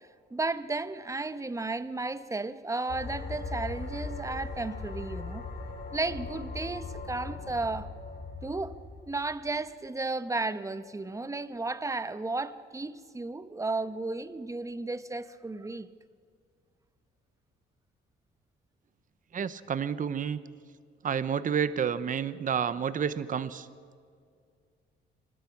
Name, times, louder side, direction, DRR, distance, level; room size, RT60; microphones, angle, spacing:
voice 1, 0.3-5.4 5.9-7.9 8.4-8.8 9.1-15.9, right 3 dB, 15° right, 1.0 m, -34 dB
sound 1, 2.9-9.5, left 3 dB, 55° left, 6.1 m, -39 dB
voice 2, 19.3-20.4 21.0-23.7, right 7 dB, 40° right, 0.9 m, -30 dB
25.5 x 19.5 x 6.0 m
cardioid pair, 90°, 20 cm